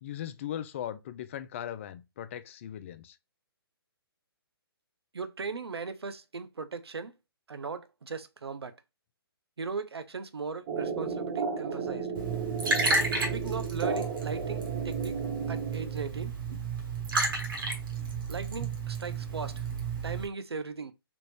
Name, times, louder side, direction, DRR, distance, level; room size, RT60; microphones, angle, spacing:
voice 1, 0.0-3.2, left 10 dB, 30° left, 0.3 m, -38 dB
voice 2, 5.1-7.2 7.5-8.8 9.6-12.1 13.2-15.2 15.5-16.4 18.3-19.6 20.0-20.9, right 4 dB, 80° right, 0.5 m, -38 dB
sound 1, 10.7-16.2, right 5 dB, 30° right, 0.8 m, -34 dB
Liquid, 12.1-20.2, right 4 dB, 60° right, 1.2 m, -32 dB
3.4 x 2.4 x 3.1 m
figure-of-eight pair, 135°, 13 cm